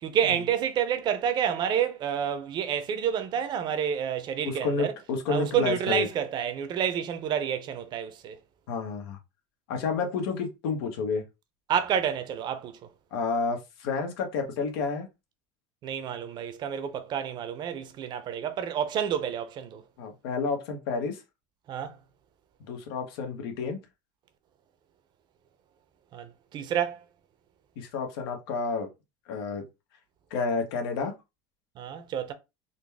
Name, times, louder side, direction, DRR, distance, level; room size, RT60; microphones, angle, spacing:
voice 1, 0.0-4.9 5.3-8.4 11.7-12.8 15.8-19.8 21.7-22.0 26.1-27.0 31.8-32.3, right 9 dB, 35° right, 0.6 m, -29 dB
voice 2, 4.4-6.1 8.7-9.2 9.7-11.2 13.1-15.1 20.0-21.2 22.7-23.8 27.8-28.9 29.3-29.6 30.3-31.1, left 4 dB, 90° left, 1.1 m, -30 dB
3.9 x 2.2 x 3.4 m
cardioid pair, 145°, 12 cm